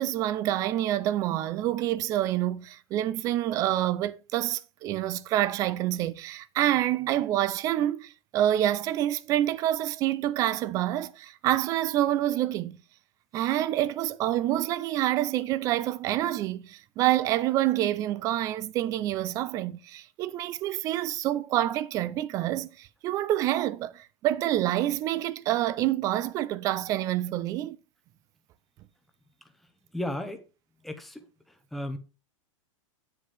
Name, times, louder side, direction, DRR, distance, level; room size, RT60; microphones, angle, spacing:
voice 1, 0.0-12.8 13.3-27.8, right 13 dB, 20° right, 0.4 m, -27 dB
voice 2, 29.9-30.4 30.8-31.2 31.7-32.0, left 1 dB, ahead, 0.7 m, -33 dB
8.4 x 7.6 x 3.3 m
supercardioid pair, 160°, 17 cm